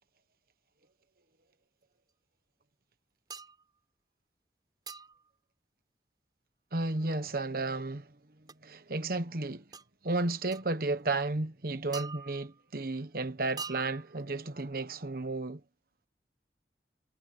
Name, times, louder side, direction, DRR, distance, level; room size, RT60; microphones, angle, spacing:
sound 1, 3.3-3.6 4.9-5.3 8.5-8.6 9.7-9.9 10.5-10.7 11.9-12.6 13.6-14.2, right 5 dB, 25° right, 3.9 m, -43 dB
voice 1, 6.7-8.1 8.6-9.6 10.0-15.6, right 2 dB, 55° right, 1.2 m, -33 dB
head